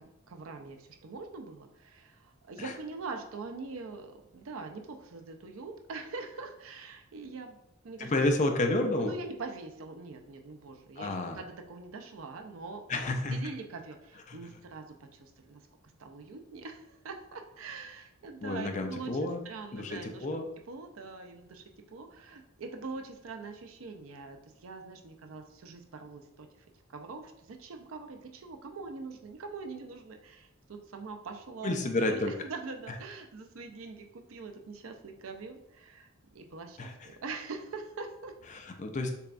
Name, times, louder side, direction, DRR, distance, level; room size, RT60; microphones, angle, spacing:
voice 1, 0.0-7.6 7.8-8.1 9.0-13.0 13.3-14.8 15.1-15.6 16.0-21.6 21.9-26.5 26.9-36.1 36.3-38.3, right 4 dB, 85° right, 5 dB, 0.5 m, -43 dB
voice 2, 8.0-9.1 11.0-11.4 12.9-13.4 14.3-14.4 18.4-19.4 19.7-20.5 31.6-32.3 36.8-36.9 38.5-39.1, left 2 dB, 35° left, 4 dB, 0.5 m, -30 dB
6.7 x 2.3 x 2.5 m, 0.82 s
head